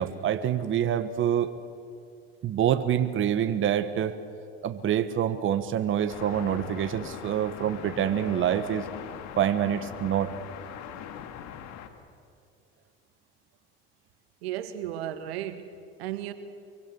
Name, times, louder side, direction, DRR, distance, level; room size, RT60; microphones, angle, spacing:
voice 1, 0.0-1.5 2.4-4.1 4.6-8.9 9.4-10.4, right 10 dB, 40° right, 10 dB, 1.3 m, -26 dB
sound 1, 6.1-11.9, left 9 dB, 60° left, 2.1 m, -41 dB
voice 2, 14.4-16.3, right 11 dB, 80° right, 10 dB, 1.6 m, -35 dB
24.5 x 23.5 x 7.0 m, 2.4 s
hypercardioid pair, 90°, 31 cm